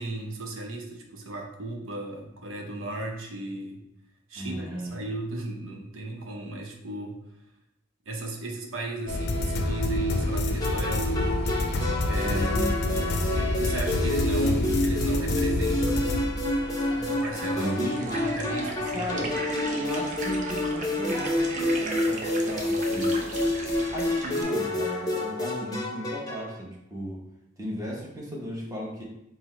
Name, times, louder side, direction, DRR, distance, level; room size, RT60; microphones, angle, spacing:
voice 1, 0.0-3.8 4.3-7.2 8.1-11.4 12.0-12.5 13.3-16.5 16.9-17.8 18.2-19.4, right 2 dB, 85° right, 1 dB, 0.7 m, -36 dB
voice 2, 4.3-5.0 12.2-13.1 14.4-14.7 17.4-18.2 18.9-19.3 19.7-23.4 23.9-27.2 27.6-29.0, equal, 15° right, -3 dB, 0.9 m, -35 dB
sound 1, 9.1-17.2, left 1 dB, 55° left, 0.5 m, -27 dB
sound 2, 10.6-26.5, left 1 dB, 20° left, 0.7 m, -29 dB
sound 3, 16.6-24.4, right 2 dB, 40° right, 0.6 m, -37 dB
4.6 x 2.1 x 4.2 m, 0.85 s
head